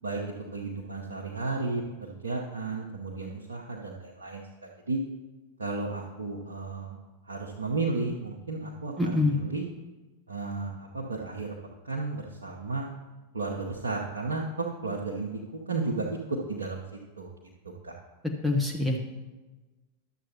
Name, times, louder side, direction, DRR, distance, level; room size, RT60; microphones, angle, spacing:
voice 1, 0.0-4.4 4.9-5.0 5.6-7.0 7.3-9.6 10.3-11.5 11.8-12.9 13.3-16.8 17.2-17.3 17.8-17.9, right 3 dB, 75° right, -2 dB, 0.8 m, -33 dB
voice 2, 9.0-9.4 18.4-19.0, left 2 dB, ahead, 0 dB, 0.8 m, -25 dB
11.5 x 7.5 x 2.8 m, 1.2 s
figure-of-eight pair, 90°, 0 cm